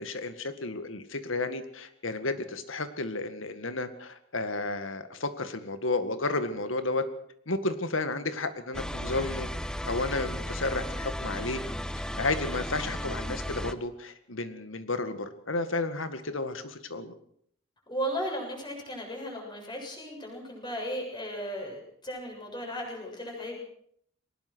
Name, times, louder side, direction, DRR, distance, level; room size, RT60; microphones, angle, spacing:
voice 1, 0.0-7.1 7.5-9.5 9.8-11.6 12.2-17.1, left 2 dB, 75° left, 10 dB, 2.0 m, -32 dB
sound 1, 8.7-13.7, equal, 5° left, 0.8 m, -35 dB
voice 2, 17.9-23.6, equal, 20° left, 0 dB, 7.5 m, -35 dB
22.5 x 19.5 x 6.3 m, 0.66 s
head